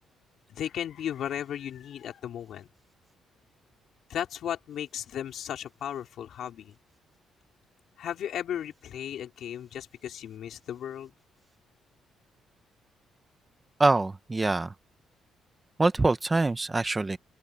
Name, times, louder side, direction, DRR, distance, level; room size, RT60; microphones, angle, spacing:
voice 1, 0.5-2.7 4.1-6.8 8.0-11.1, left 10 dB, 70° left, 4.2 m, -35 dB
voice 2, 13.8-14.7 15.8-17.2, right 3 dB, 20° right, 1.1 m, -24 dB
open air
cardioid pair, 90°, 0 cm